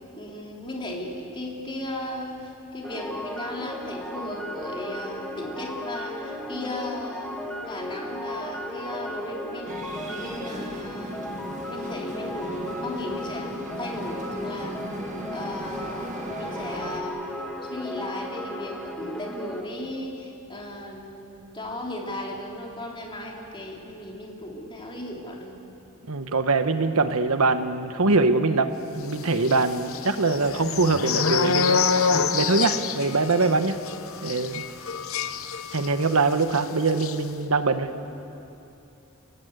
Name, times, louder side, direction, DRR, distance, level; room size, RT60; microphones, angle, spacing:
voice 1, 0.2-7.3 7.7-9.7 10.1-11.2 11.7-13.5 13.8-14.8 15.3-17.2 17.7-25.5, left 1 dB, 25° left, -1 dB, 3.4 m, -36 dB
sound 1, 2.8-19.6, left 1 dB, 5° left, 1.9 m, -35 dB
sound 2, 9.7-17.0, right 1 dB, 35° right, 2.0 m, -38 dB
voice 2, 26.1-31.8 32.3-33.8 34.2-34.6 35.7-37.9, right 3 dB, 75° right, 9 dB, 1.3 m, -23 dB
sound 3, 29.4-36.1 36.4-36.6 36.9-37.2, left 5 dB, 65° left, 1.0 m, -26 dB
29.0 x 18.0 x 8.2 m, 2.8 s
head